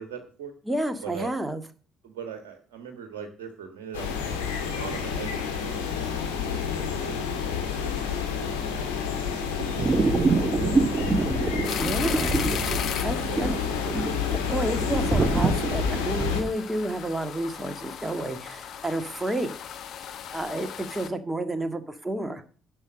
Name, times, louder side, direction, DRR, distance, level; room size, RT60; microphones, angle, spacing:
voice 1, 0.0-0.5 1.0-1.3 2.0-8.1 8.6-8.9 9.5-11.5 11.8-11.9 13.3-13.6 14.4-14.8 15.2-15.6, right 7 dB, 65° right, 5 dB, 1.5 m, -41 dB
voice 2, 0.7-1.6 11.7-12.3 13.0-13.5 14.5-19.5 20.3-22.4, right 1 dB, 10° right, 8 dB, 1.8 m, -30 dB
sound 1, 3.9-16.4, left 7 dB, 75° left, 2.0 m, -29 dB
sound 2, 9.8-16.5, right 3 dB, 30° right, 1.2 m, -26 dB
sound 3, 11.6-21.1, left 8 dB, 50° left, 1.3 m, -37 dB
11.0 x 6.6 x 6.5 m, 0.39 s
figure-of-eight pair, 50°, 0 cm